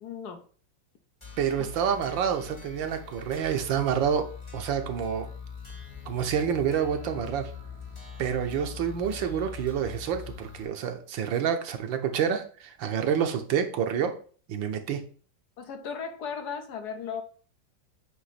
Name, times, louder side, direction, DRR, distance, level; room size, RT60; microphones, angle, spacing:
voice 1, 0.0-0.4 1.6-1.7 15.6-17.2, left 6 dB, 65° left, 7 dB, 1.2 m, -36 dB
sound 1, 1.2-10.6, left 6 dB, 15° left, 1.8 m, -42 dB
voice 2, 1.4-4.3 4.5-5.3 6.1-7.5 8.2-14.1 14.5-15.0, right 8 dB, 90° right, 7 dB, 1.6 m, -28 dB
8.2 x 2.9 x 5.8 m, 0.42 s
omnidirectional pair, 2.0 m